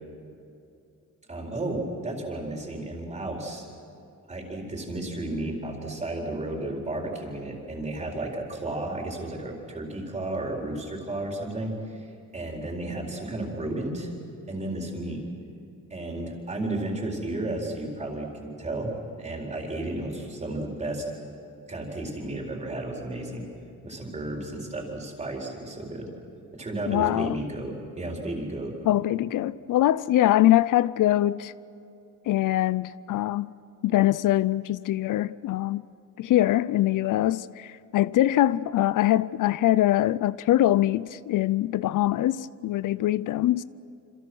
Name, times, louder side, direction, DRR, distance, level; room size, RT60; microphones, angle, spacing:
voice 1, 1.3-3.7 4.3-14.1 14.5-15.2 15.9-18.9 19.2-21.0 21.7-23.5 23.8-26.1 26.5-28.7, right 2 dB, 20° right, 4.3 m, -33 dB
voice 2, 26.9-27.4 28.9-31.5 32.3-33.5 33.8-35.9 36.2-43.6, left 14 dB, 75° left, 0.5 m, -23 dB
28.0 x 27.0 x 6.2 m
wide cardioid pair, 170°, 31 cm